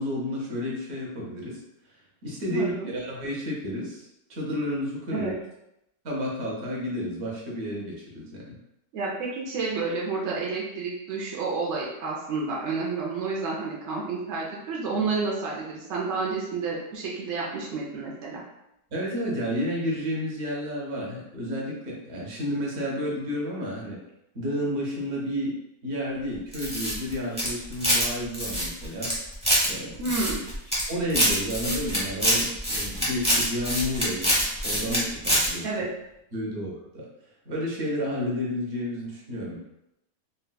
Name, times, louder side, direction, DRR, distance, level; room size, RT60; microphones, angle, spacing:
voice 1, 0.0-1.6 2.2-5.3 6.0-8.5 18.9-24.0 24.3-29.1 29.6-30.1 30.9-35.7 36.3-37.0 37.4-39.6, equal, 50° right, -3 dB, 0.9 m, -31 dB
voice 2, 2.5-2.9 5.1-5.3 8.9-18.4 30.0-30.4 35.6-35.9, right 4 dB, 75° right, -4 dB, 0.6 m, -30 dB
sound 1, 26.5-28.1 28.3-29.7 30.0-30.8 31.1-35.0 35.2-35.5, equal, 5° right, 0.5 m, -24 dB
3.9 x 2.2 x 2.2 m, 0.86 s
omnidirectional pair, 1.8 m